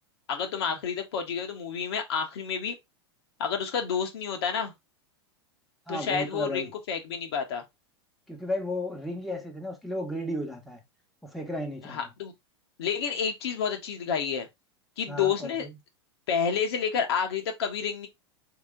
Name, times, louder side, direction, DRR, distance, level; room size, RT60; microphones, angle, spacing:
voice 1, 0.3-2.7 3.4-4.7 5.9-7.6 11.8-12.3 12.8-14.5 15.0-15.7 16.3-18.1, left 7 dB, 70° left, 1.2 m, -29 dB
voice 2, 5.9-6.7 8.3-10.8 11.2-12.1 15.1-15.7, left 1 dB, ahead, 1.3 m, -34 dB
4.0 x 3.0 x 3.7 m
hypercardioid pair, 95°, 14 cm